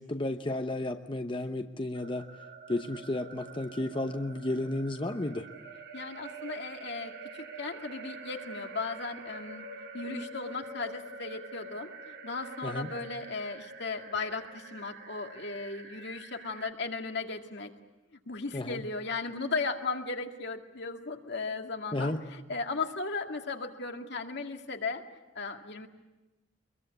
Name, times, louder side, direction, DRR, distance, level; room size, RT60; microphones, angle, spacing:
voice 1, 0.0-2.3 2.7-5.5 12.6-12.9 18.5-18.8 21.9-22.2, left 1 dB, 25° left, 6 dB, 0.9 m, -33 dB
sound 1, 1.9-16.7, right 3 dB, 55° right, 1.6 m, -46 dB
voice 2, 5.9-9.7 9.9-17.7 18.3-25.0 25.4-25.9, left 4 dB, 65° left, 4 dB, 2.1 m, -36 dB
24.5 x 22.5 x 8.3 m, 1.1 s
head